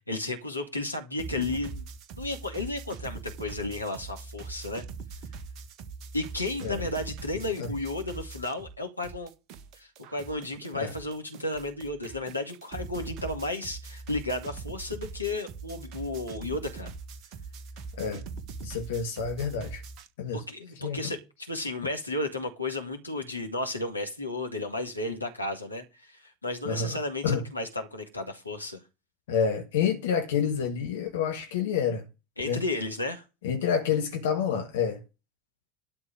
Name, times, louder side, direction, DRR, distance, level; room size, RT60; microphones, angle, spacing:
voice 1, 0.1-1.9 2.2-4.8 6.1-9.3 9.7-16.9 20.3-28.8 32.4-33.2, left 2 dB, 90° left, 2.4 m, -33 dB
sound 1, 1.2-8.8 9.0-20.1, right 4 dB, 50° right, 1.8 m, -42 dB
voice 2, 18.6-19.8 20.2-20.4 20.8-21.1 26.7-27.4 29.3-32.1 32.4-32.6 33.4-35.0, left 7 dB, 65° left, 1.9 m, -28 dB
12.0 x 4.9 x 8.0 m
figure-of-eight pair, 75°, 0 cm